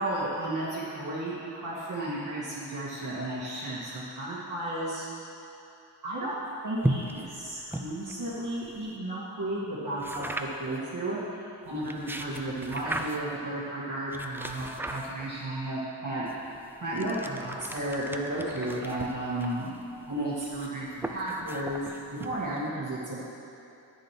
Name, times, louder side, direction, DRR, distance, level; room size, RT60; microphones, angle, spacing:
voice 1, 0.0-5.0 6.0-11.2 11.6-19.7 20.1-23.3, right 1 dB, 45° right, -9 dB, 2.2 m, -33 dB
sound 1, 6.8-9.0 10.0-10.8 11.7-13.4 14.1-15.5 16.3-22.7, right 1 dB, 5° right, 0.4 m, -37 dB
10.0 x 9.4 x 3.3 m, 2.8 s
cardioid pair, 95°, 44 cm